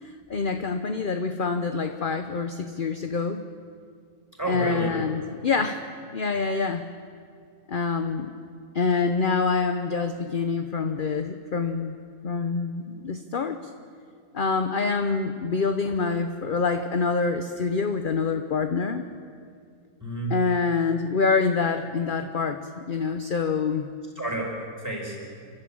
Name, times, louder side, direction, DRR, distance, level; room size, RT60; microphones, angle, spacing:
voice 1, 0.0-3.4 4.5-5.8 6.1-6.8 7.7-8.3 8.7-11.9 12.2-13.6 14.3-19.0 20.3-23.9, left 4 dB, 40° left, 7 dB, 0.8 m, -26 dB
voice 2, 4.4-4.9 20.0-20.4 24.1-25.2, right 2 dB, 10° right, -2 dB, 4.9 m, -30 dB
29.0 x 12.5 x 8.8 m, 2.2 s
omnidirectional pair, 1.7 m